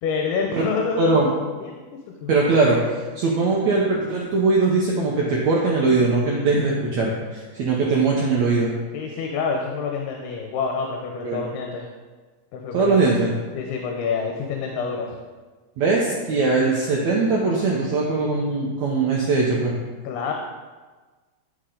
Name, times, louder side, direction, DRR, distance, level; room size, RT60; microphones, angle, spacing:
voice 1, 0.0-1.3 1.6-2.4 8.9-11.9 12.5-13.0 13.6-15.2 20.0-20.3, left 5 dB, 80° left, 1 dB, 2.8 m, -27 dB
voice 2, 1.0-1.3 2.3-8.7 11.2-11.4 12.7-13.3 15.8-19.7, right 3 dB, 85° right, -4 dB, 1.6 m, -21 dB
9.8 x 6.3 x 3.8 m, 1.3 s
omnidirectional pair, 4.6 m